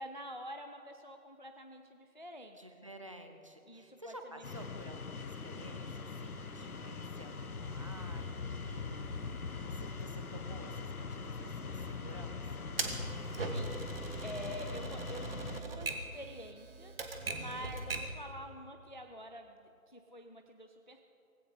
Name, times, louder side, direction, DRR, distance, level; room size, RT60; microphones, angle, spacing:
voice 1, 0.0-2.9 3.7-4.8 13.5-13.8 14.2-17.0 17.4-21.0, equal, 35° left, 5 dB, 0.5 m, -47 dB
voice 2, 2.6-12.7, right 1 dB, 20° right, 5 dB, 0.7 m, -52 dB
sound 1, 4.4-15.6, left 4 dB, 70° left, 1.3 m, -42 dB
Typewriter, 12.8-18.2, right 3 dB, 40° right, 1.5 m, -40 dB
18.0 x 16.5 x 4.8 m, 2.8 s
figure-of-eight pair, 160°, 45 cm